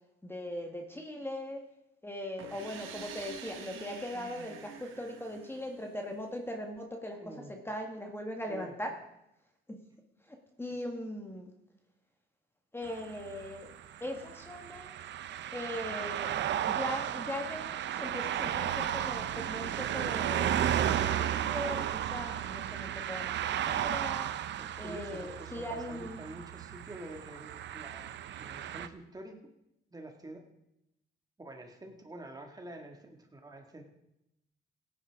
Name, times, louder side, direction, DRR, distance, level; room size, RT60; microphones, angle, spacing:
voice 1, 0.2-1.6 2.0-8.9 10.3-11.5 12.7-13.7 14.0-15.0 15.5-16.3 16.7-24.3 24.8-26.3, left 1 dB, 10° left, 3 dB, 1.5 m, -40 dB
sound 1, 2.4-6.1, right 6 dB, 90° right, 1.5 m, -47 dB
voice 2, 7.2-7.6 8.4-8.7 24.6-28.1 28.4-29.4 29.9-30.5 31.4-33.8, right 1 dB, 20° right, 3 dB, 2.0 m, -47 dB
sound 2, 12.8-28.9, right 10 dB, 65° right, 0.7 m, -34 dB
17.0 x 9.8 x 3.7 m, 0.84 s
cardioid pair, 90°, 20 cm